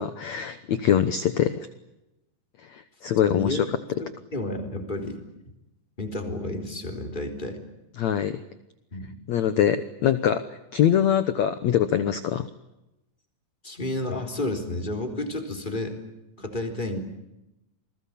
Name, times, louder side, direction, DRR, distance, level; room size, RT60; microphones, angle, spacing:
voice 1, 0.0-1.7 2.7-3.6 8.0-8.4 9.3-12.5, left 9 dB, 90° left, 12 dB, 1.5 m, -23 dB
voice 2, 3.3-3.6 3.9-5.2 6.0-7.6 8.9-9.1 13.6-15.9 16.4-17.0, left 2 dB, 10° left, 4 dB, 3.3 m, -31 dB
28.5 x 20.5 x 8.6 m, 0.92 s
omnidirectional pair, 4.8 m